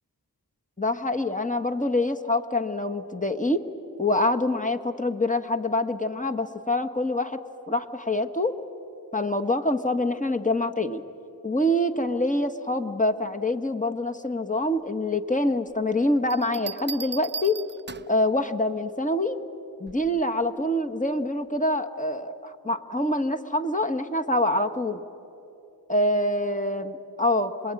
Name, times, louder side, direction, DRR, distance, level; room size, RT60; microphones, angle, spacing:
voice 1, 0.8-3.6 4.0-7.4 7.7-8.5 9.1-11.0 11.4-17.6 18.1-19.4 19.8-25.0 25.9-27.7, left 1 dB, 20° left, 7 dB, 1.4 m, -25 dB
Bell, 16.3-18.3 19.9-20.2, right 5 dB, 25° right, 0.6 m, -37 dB
27.0 x 22.0 x 9.8 m, 3.0 s
wide cardioid pair, 45°, 41 cm